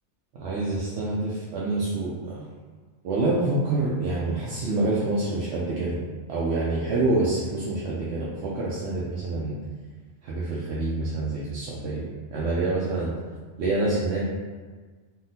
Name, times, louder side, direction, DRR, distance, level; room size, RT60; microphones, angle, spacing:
voice 1, 0.3-2.5 3.0-6.0 6.3-9.6 10.2-13.1 13.6-14.2, right 2 dB, 70° right, -6 dB, 0.8 m, -27 dB
3.5 x 2.4 x 2.7 m, 1.5 s
omnidirectional pair, 1.2 m